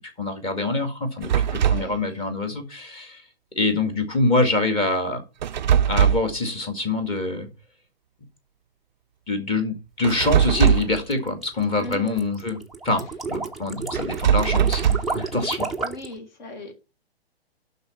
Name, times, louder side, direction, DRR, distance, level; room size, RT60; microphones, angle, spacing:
voice 1, 0.2-3.2 3.6-5.2 5.9-7.5 9.3-12.6 12.8-15.7, left 2 dB, 15° left, 1.9 m, -25 dB
sound 1, 1.2-1.9 5.4-6.4 10.0-11.0 13.9-15.2, right 9 dB, 45° right, 0.4 m, -20 dB
voice 2, 1.6-2.0 11.8-12.2 15.8-16.7, left 2 dB, 45° left, 2.8 m, -37 dB
sound 2, 10.1-16.1, right 3 dB, ahead, 0.6 m, -31 dB
11.5 x 4.1 x 5.9 m
figure-of-eight pair, 120°, 32 cm